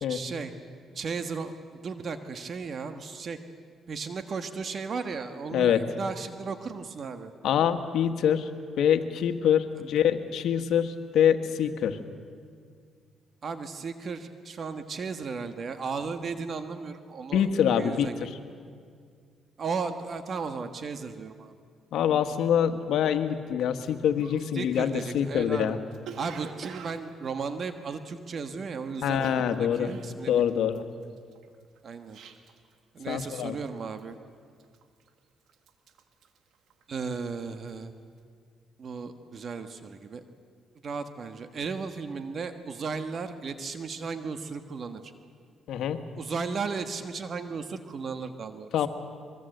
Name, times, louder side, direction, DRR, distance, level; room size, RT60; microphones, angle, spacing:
voice 1, 0.1-0.5 0.9-1.5 1.8-3.4 3.9-7.3 9.8-9.9 13.4-17.5 17.7-18.3 19.6-21.5 24.5-25.7 26.1-30.4 31.8-32.2 32.9-34.2 36.9-37.9 38.8-40.2 40.8-45.1 46.2-48.7, right 5 dB, 50° right, 8 dB, 1.4 m, -35 dB
voice 2, 7.4-8.5 8.8-12.0 17.3-18.3 21.9-25.8 29.0-29.9 30.3-30.8 33.1-33.6 45.7-46.0 48.7-48.9, left 9 dB, 80° left, 8 dB, 1.5 m, -25 dB
Cough, 23.8-23.9 24.2-28.6 28.9-32.7 33.0-33.4 33.6-34.1 34.6-35.2 35.5-37.2 37.5-37.8, right 7 dB, 75° right, 1.7 m, -45 dB
23.0 x 23.0 x 8.0 m, 2.1 s
cardioid pair, 90°, 0 cm